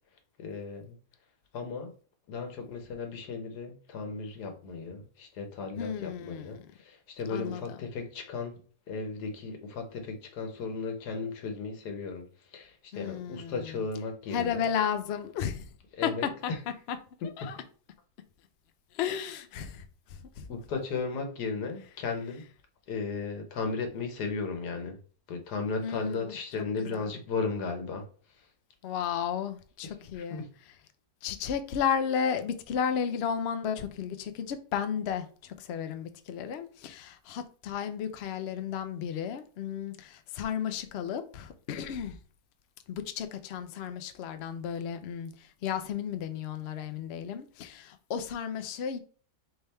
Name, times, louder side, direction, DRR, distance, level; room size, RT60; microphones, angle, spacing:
voice 1, 0.4-1.0 1.5-1.9 2.3-8.6 8.9-12.2 12.5-14.6 16.0-16.6 17.4-17.5 20.5-22.4 22.9-25.0 25.3-28.0 30.2-30.5, left 4 dB, 90° left, 1.5 m, -35 dB
voice 2, 5.8-6.7 7.3-7.8 12.9-13.8 14.3-15.7 16.0-16.5 16.9-17.0 17.2-17.6 18.9-19.8 20.1-20.5 25.8-26.2 26.8-27.1 28.8-30.7 31.2-42.2 42.9-49.0, left 8 dB, 65° left, 0.6 m, -33 dB
3.4 x 3.4 x 4.2 m
omnidirectional pair, 1.7 m